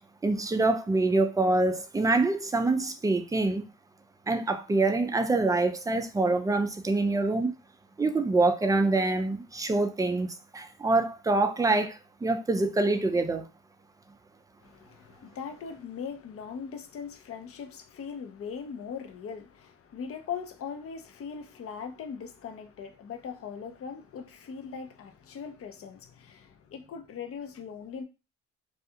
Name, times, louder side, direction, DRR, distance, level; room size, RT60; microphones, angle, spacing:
voice 1, 0.2-3.7 4.3-7.5 8.0-13.4, right 2 dB, 10° right, 0.3 m, -25 dB
voice 2, 14.6-28.0, left 6 dB, 50° left, 0.6 m, -40 dB
2.3 x 2.3 x 2.8 m
cardioid pair, 90°, 30 cm